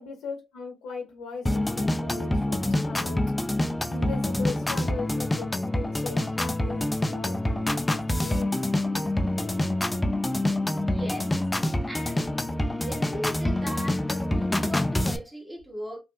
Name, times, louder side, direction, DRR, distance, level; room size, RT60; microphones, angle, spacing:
voice 1, 0.0-3.2 3.9-8.6, left 4 dB, 85° left, 0.8 m, -39 dB
sound 1, 1.5-15.2, left 1 dB, 15° left, 0.3 m, -26 dB
voice 2, 10.8-11.3 11.8-12.3 12.8-16.0, equal, 10° right, 1.2 m, -37 dB
3.3 x 2.5 x 2.5 m
cardioid pair, 90°, 0 cm